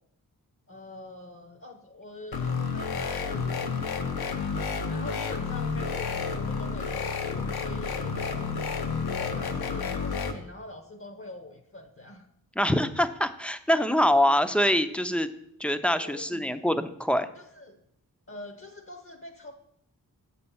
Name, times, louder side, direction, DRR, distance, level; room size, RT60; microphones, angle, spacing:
voice 1, 0.7-3.9 4.4-8.6 9.2-12.3 16.0-16.6 17.4-17.8 18.3-19.5, left 2 dB, 35° left, 7 dB, 0.7 m, -44 dB
sound 1, 2.3-10.3, left 5 dB, 85° left, 0.8 m, -30 dB
voice 2, 12.6-15.3 15.6-17.3, equal, 5° left, 11 dB, 0.4 m, -24 dB
7.6 x 4.3 x 7.0 m, 0.77 s
wide cardioid pair, 105°, 36 cm